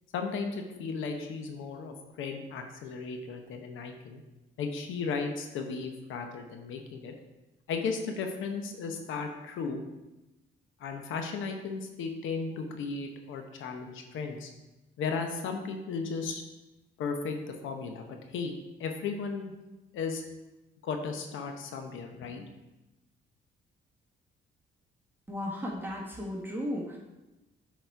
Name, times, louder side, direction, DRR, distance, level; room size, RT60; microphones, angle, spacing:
voice 1, 0.1-4.2 4.6-7.1 7.7-9.8 10.8-14.5 15.0-16.4 17.0-18.5 18.8-19.5 19.9-20.2 20.8-22.5, left 5 dB, 80° left, 4 dB, 0.9 m, -35 dB
voice 2, 25.3-27.0, left 1 dB, 10° right, -3 dB, 1.6 m, -35 dB
8.0 x 4.2 x 4.6 m, 1.0 s
cardioid pair, 90°, 20 cm